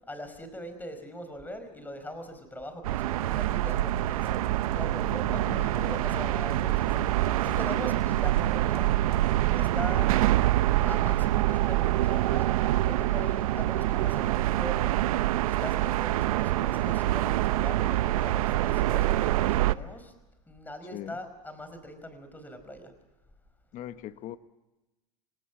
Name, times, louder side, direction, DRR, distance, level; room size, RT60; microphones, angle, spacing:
voice 1, 0.1-4.4 4.8-7.0 7.4-8.9 9.5-10.1 10.8-14.9 15.5-20.1 20.5-22.9, equal, 10° left, 9 dB, 5.1 m, -41 dB
sound 1, 2.8-19.7, right 15 dB, 90° right, 0.8 m, -25 dB
sound 2, 3.0-7.6 7.9-8.2 8.7-8.8, right 9 dB, 50° right, 3.9 m, -50 dB
sound 3, 3.5-9.3, left 12 dB, 85° left, 2.2 m, -45 dB
voice 2, 5.3-5.7 13.2-13.3 20.9-21.2 23.7-24.4, left 12 dB, 45° left, 12 dB, 1.1 m, -40 dB
26.5 x 19.0 x 6.1 m, 1.0 s
supercardioid pair, 115°, 18 cm